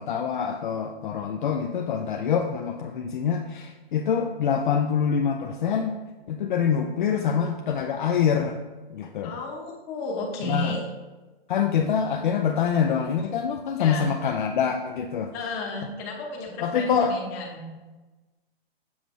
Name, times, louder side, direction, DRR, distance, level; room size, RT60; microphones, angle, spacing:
voice 1, 0.0-6.0 6.3-8.6 8.9-9.3 10.4-10.7 11.5-15.3 16.6-17.2, left 7 dB, 50° left, 3 dB, 0.5 m, -25 dB
voice 2, 9.2-10.9 13.8-14.1 15.3-17.7, left 2 dB, 20° left, -1 dB, 1.0 m, -33 dB
7.1 x 6.1 x 3.1 m, 1.2 s
hypercardioid pair, 165°, 31 cm